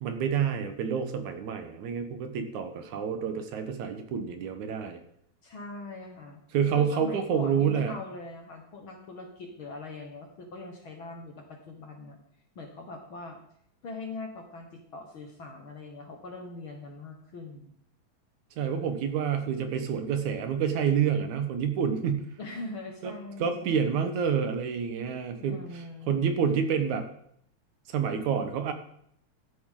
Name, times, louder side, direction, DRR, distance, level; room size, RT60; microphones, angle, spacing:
voice 1, 0.0-5.0 6.5-8.0 18.6-22.3 23.0-23.1 23.4-25.6 26.1-27.0 27.9-28.7, right 7 dB, 70° right, 7 dB, 2.4 m, -28 dB
voice 2, 5.4-6.4 6.7-12.2 12.5-13.4 13.8-17.7 22.4-24.0 25.4-26.3, left 2 dB, 50° left, 3 dB, 1.7 m, -42 dB
14.0 x 11.0 x 3.8 m, 0.69 s
omnidirectional pair, 3.6 m